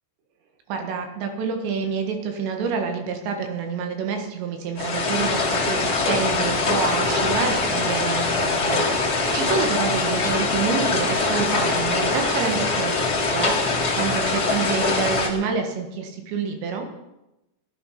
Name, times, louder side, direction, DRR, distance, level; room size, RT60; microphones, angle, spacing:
voice 1, 0.7-16.9, right 5 dB, 85° right, 5 dB, 3.9 m, -28 dB
sound 1, 4.8-15.3, left 3 dB, 40° left, 1.5 m, -23 dB
15.5 x 11.5 x 5.8 m, 0.94 s
omnidirectional pair, 4.9 m